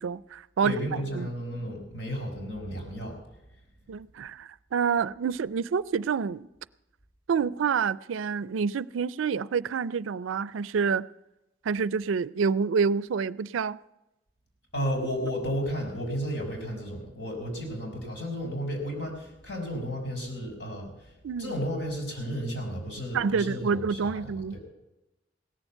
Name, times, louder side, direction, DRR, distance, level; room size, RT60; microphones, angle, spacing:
voice 1, 0.0-0.7 1.1-1.3 3.9-6.5 7.3-11.1 11.6-13.8 21.2-21.5 23.1-24.6, right 6 dB, 90° right, 0.4 m, -28 dB
voice 2, 0.6-3.2 14.7-20.9 21.4-24.6, equal, 65° left, 4.3 m, -33 dB
17.0 x 7.1 x 8.0 m
head